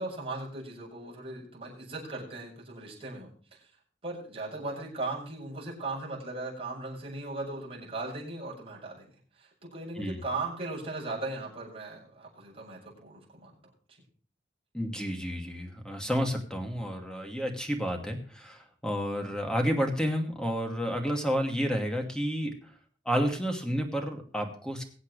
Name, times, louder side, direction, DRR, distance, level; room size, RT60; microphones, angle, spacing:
voice 1, 0.0-3.7 4.0-9.1 9.4-13.6, right 2 dB, 35° right, -4 dB, 7.0 m, -38 dB
voice 2, 14.7-22.5 23.1-24.8, equal, 5° left, 3 dB, 2.5 m, -30 dB
23.0 x 8.2 x 3.3 m, 0.42 s
head